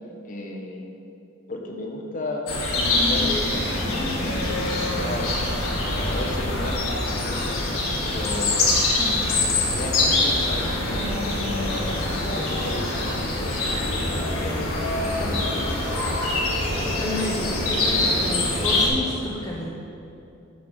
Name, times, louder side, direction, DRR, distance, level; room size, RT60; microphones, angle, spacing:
voice 1, 0.2-0.9 1.5-2.5 2.8-5.4 5.7-7.6 8.0-9.2 9.6-11.3 12.0-12.8 13.2-15.5, left 2 dB, 40° left, 1 dB, 1.0 m, -34 dB
sound 1, 2.5-18.9, left 2 dB, 85° left, 1.6 m, -24 dB
voice 2, 16.8-19.7, left 1 dB, 15° left, -3 dB, 0.7 m, -30 dB
11.0 x 3.9 x 6.2 m, 2.7 s
head